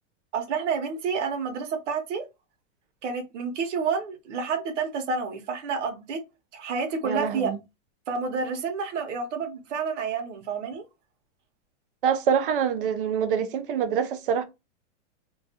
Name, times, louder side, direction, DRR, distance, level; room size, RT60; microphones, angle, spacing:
voice 1, 0.3-2.2 3.0-6.2 6.5-7.5 8.1-10.8, right 5 dB, 70° right, 0.8 m, -29 dB
voice 2, 7.0-7.6 12.0-14.4, right 7 dB, 45° right, 0.4 m, -25 dB
2.3 x 2.2 x 2.7 m
supercardioid pair, 175°, 37 cm